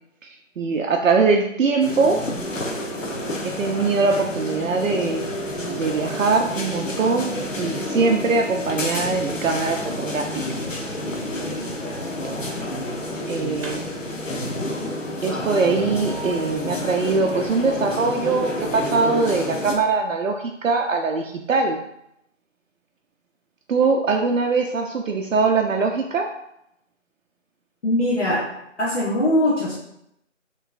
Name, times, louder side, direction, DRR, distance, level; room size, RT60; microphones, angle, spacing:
voice 1, 0.2-2.3 3.4-5.3 5.8-10.4 13.3-13.8 15.2-21.8 23.7-26.3, right 4 dB, 90° right, 2 dB, 0.5 m, -22 dB
sound 1, 1.8-19.7, left 1 dB, 80° left, 0.9 m, -29 dB
voice 2, 27.8-28.4 28.8-29.8, left 1 dB, 60° left, -9 dB, 1.3 m, -21 dB
4.4 x 3.1 x 2.4 m, 0.79 s
figure-of-eight pair, 165°, 38 cm